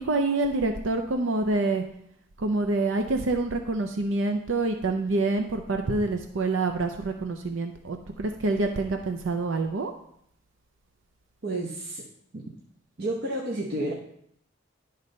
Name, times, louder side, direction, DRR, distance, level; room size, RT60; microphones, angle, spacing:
voice 1, 0.0-1.8 2.4-9.9, right 2 dB, 75° right, 5 dB, 0.6 m, -26 dB
voice 2, 11.4-12.0 12.3-12.4 13.0-13.9, right 1 dB, 50° right, -2 dB, 1.0 m, -30 dB
11.0 x 4.0 x 5.3 m, 0.70 s
head